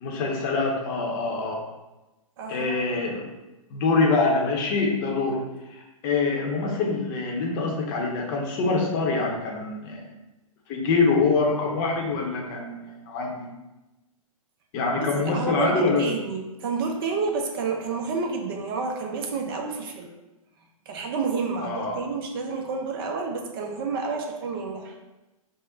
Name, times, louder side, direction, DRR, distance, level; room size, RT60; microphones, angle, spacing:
voice 1, 0.0-1.6 2.5-3.3 3.7-5.4 5.7-10.1 10.7-13.5 14.7-16.1 21.6-22.0, left 3 dB, 35° left, 0 dB, 0.7 m, -25 dB
voice 2, 2.4-2.8 15.0-20.1 20.9-24.9, right 4 dB, 40° right, 2 dB, 0.5 m, -29 dB
3.7 x 2.0 x 3.8 m, 1.0 s
figure-of-eight pair, 115°, 19 cm